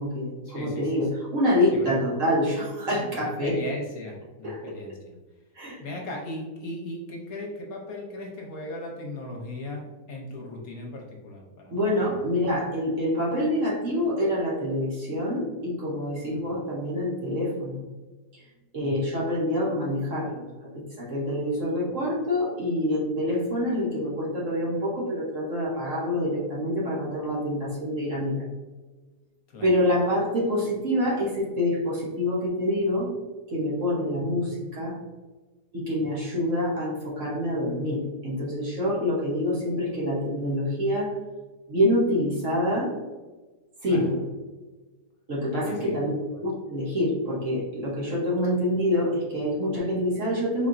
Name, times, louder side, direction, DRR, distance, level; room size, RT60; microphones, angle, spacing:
voice 1, 0.0-3.6 4.4-4.8 5.5-5.8 11.7-17.8 18.3-18.4 18.7-20.7 21.0-28.4 29.6-33.1 33.5-35.0 35.7-41.2 41.7-42.9 43.8-44.2 45.3-46.1 46.4-50.7, left 1 dB, 50° right, -4 dB, 1.2 m, -26 dB
voice 2, 0.5-0.9 1.7-1.9 3.1-5.1 5.8-11.8 12.1-12.4 16.2-16.5 18.8-18.9 29.5-29.7 34.1-34.7 36.1-36.3 43.9-44.1 45.6-45.9 46.3-46.4, left 2 dB, 65° left, 0 dB, 1.1 m, -38 dB
4.3 x 3.8 x 2.5 m, 1.2 s
omnidirectional pair, 1.8 m